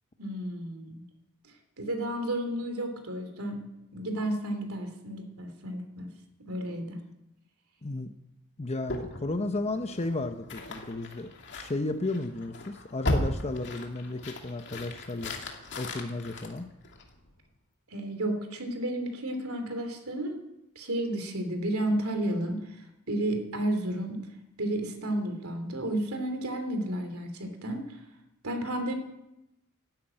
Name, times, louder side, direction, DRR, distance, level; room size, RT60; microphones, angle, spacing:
voice 1, 0.2-1.1 1.8-3.6 3.9-6.1 6.5-7.0 17.9-20.4 20.7-24.2 24.6-28.0 28.4-28.9, right 1 dB, 75° right, 6 dB, 3.0 m, -32 dB
voice 2, 7.8-8.1 8.6-15.3 15.8-16.7, left 2 dB, 30° left, 7 dB, 0.8 m, -33 dB
sound 1, 8.9-17.3, left 1 dB, 55° left, 2.4 m, -36 dB
13.0 x 12.0 x 8.9 m, 0.90 s
head